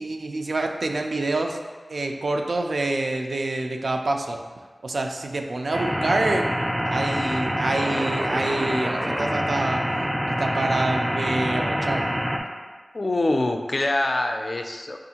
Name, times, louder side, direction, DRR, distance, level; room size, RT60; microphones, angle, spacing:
voice 1, 0.0-1.6 1.9-4.4 4.8-6.5 6.8-9.8 10.3-12.0, right 2 dB, 80° right, 3 dB, 0.3 m, -26 dB
sound 1, 5.7-12.4, equal, 15° right, 0.4 m, -26 dB
voice 2, 12.9-15.0, left 2 dB, 55° left, 4 dB, 0.3 m, -24 dB
5.4 x 2.5 x 2.8 m, 1.5 s
wide cardioid pair, 50°, 0 cm